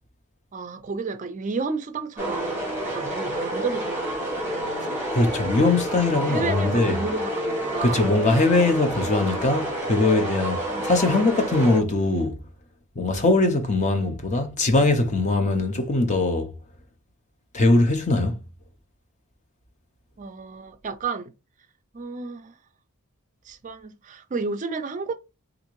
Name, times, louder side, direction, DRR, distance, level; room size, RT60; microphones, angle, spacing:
voice 1, 0.5-5.0 6.2-8.1 20.2-21.3 21.9-22.5 23.4-25.1, right 4 dB, 35° right, 0.4 m, -32 dB
sound 1, 2.2-11.8, right 1 dB, 10° right, 1.1 m, -29 dB
voice 2, 5.1-7.0 7.8-12.4 13.0-16.5 17.5-18.4, left 2 dB, 35° left, 0.6 m, -21 dB
3.5 x 2.5 x 3.0 m
head